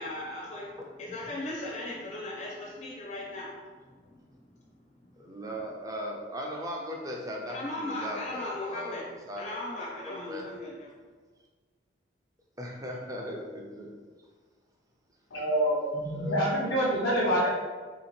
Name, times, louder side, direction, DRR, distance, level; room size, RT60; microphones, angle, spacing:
voice 1, 0.0-0.7 1.0-3.5 3.9-4.0 7.5-9.0 9.4-10.9, left 1 dB, 40° left, -4 dB, 0.6 m, -37 dB
voice 2, 5.2-10.5 12.6-13.9 16.1-16.8, equal, 20° right, -1 dB, 0.5 m, -38 dB
voice 3, 15.3-17.5, equal, 90° left, -7 dB, 0.8 m, -26 dB
3.6 x 2.9 x 4.2 m, 1.5 s
head